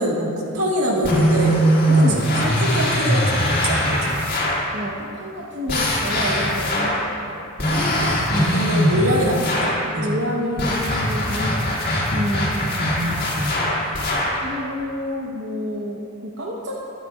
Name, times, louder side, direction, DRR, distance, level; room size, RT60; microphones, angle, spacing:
voice 1, 0.0-1.6 2.1-4.2 8.5-10.2 12.6-13.5, equal, 80° right, -3 dB, 1.8 m, -24 dB
sound 1, 1.0-4.7 5.7-7.1 7.6-9.9 10.6-14.4, equal, 40° left, 2.4 m, -21 dB
voice 2, 1.9-2.3 4.7-7.4 8.3-8.7 10.0-12.7 14.4-16.8, equal, 55° right, -4 dB, 1.0 m, -29 dB
22.0 x 8.2 x 2.4 m, 2.6 s
head